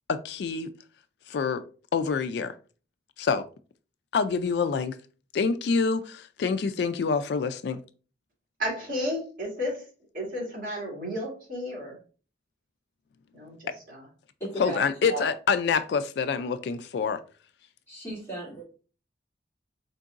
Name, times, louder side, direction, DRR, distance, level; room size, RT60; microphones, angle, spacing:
voice 1, 0.1-0.7 1.3-1.6 1.9-2.5 3.2-3.4 4.1-5.0 5.3-7.8 13.7-13.8 14.6-17.2, left 5 dB, 65° left, 0.3 m, -26 dB
voice 2, 8.6-9.8 10.1-12.0 13.3-14.1 14.6-14.7, equal, 50° right, 2.2 m, -33 dB
voice 3, 14.4-15.3 17.9-18.6, right 2 dB, 15° left, 2.3 m, -35 dB
4.4 x 3.9 x 2.4 m
head